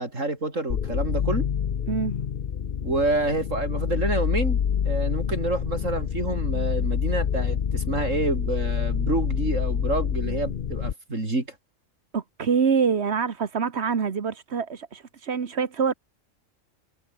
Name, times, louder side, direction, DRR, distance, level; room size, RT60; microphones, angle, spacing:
voice 1, 0.0-1.5 2.8-4.6 4.9-11.5, right 2 dB, 80° right, 5.4 m, -28 dB
sound 1, 0.7-10.9, left 8 dB, 50° left, 0.8 m, -27 dB
voice 2, 12.1-15.9, right 6 dB, 60° right, 1.6 m, -25 dB
omnidirectional pair, 1.3 m